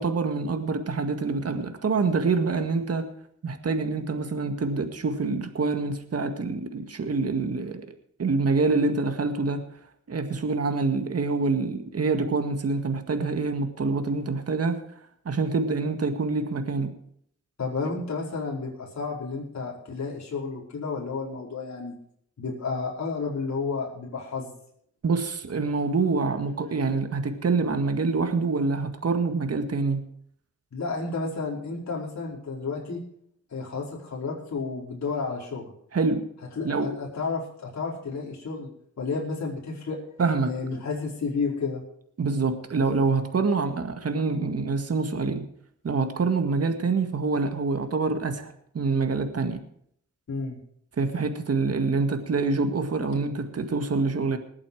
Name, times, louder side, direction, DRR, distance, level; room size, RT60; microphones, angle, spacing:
voice 1, 0.0-3.1 3.4-7.9 8.2-9.6 10.1-14.8 15.3-16.9 25.0-30.1 35.9-36.2 36.6-36.9 40.2-40.5 42.2-45.4 45.8-49.6 51.0-54.4, right 4 dB, 50° right, 6 dB, 1.9 m, -26 dB
voice 2, 17.6-21.9 22.4-24.5 30.7-33.0 33.5-35.6 36.6-38.7 39.0-40.0 40.5-41.8 50.3-50.6, left 4 dB, 60° left, -3 dB, 4.9 m, -31 dB
20.0 x 8.7 x 4.8 m, 0.67 s
cardioid pair, 65°, 31 cm